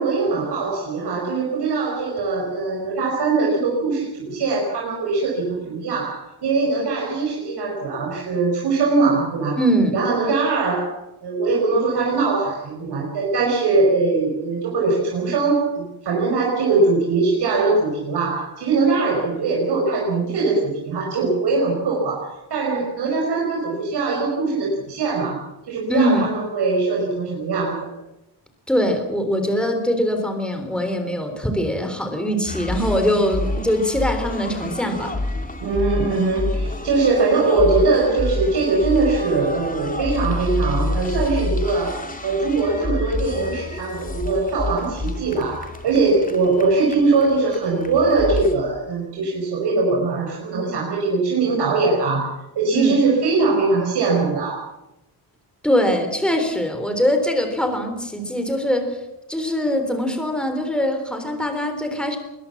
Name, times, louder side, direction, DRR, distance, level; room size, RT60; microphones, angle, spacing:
voice 1, 0.0-9.6 9.9-27.9 33.2-33.5 35.6-54.7, right 3 dB, 90° right, -2 dB, 5.5 m, -21 dB
voice 2, 9.6-10.0 25.9-26.3 28.7-35.2 52.7-52.9 55.6-59.0 59.3-62.2, equal, ahead, 5 dB, 3.6 m, -22 dB
sound 1, 32.4-48.5, left 2 dB, 20° left, 2.6 m, -28 dB
22.0 x 20.5 x 7.2 m, 0.91 s
wide cardioid pair, 160°, 39 cm